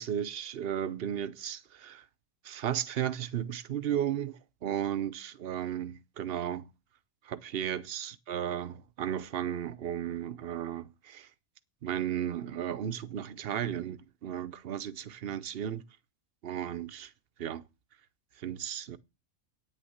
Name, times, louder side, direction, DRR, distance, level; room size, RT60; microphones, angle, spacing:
voice 1, 0.0-2.0 2.4-6.7 7.2-11.3 11.8-15.8 16.4-17.1 17.4-17.6 18.4-19.0, right 10 dB, 50° right, 0.8 m, -34 dB
9.1 x 6.6 x 7.8 m
omnidirectional pair, 1.5 m